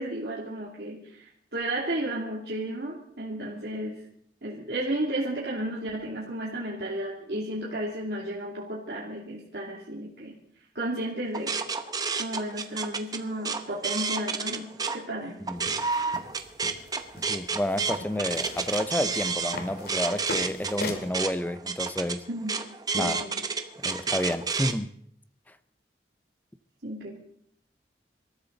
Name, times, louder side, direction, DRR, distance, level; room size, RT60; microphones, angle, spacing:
voice 1, 0.0-4.0 4.4-10.4 10.7-11.6 12.2-15.4 22.3-22.5 23.0-23.4 26.8-27.2, right 1 dB, 65° right, 2.7 m, -33 dB
sound 1, 11.3-15.0 15.4-24.7, right 5 dB, 20° right, 0.9 m, -30 dB
sound 2, 15.6-21.1, left 2 dB, 60° left, 2.4 m, -40 dB
voice 2, 17.3-22.2 22.9-23.2 23.8-24.9, left 1 dB, 10° left, 0.6 m, -30 dB
26.5 x 13.5 x 3.9 m
head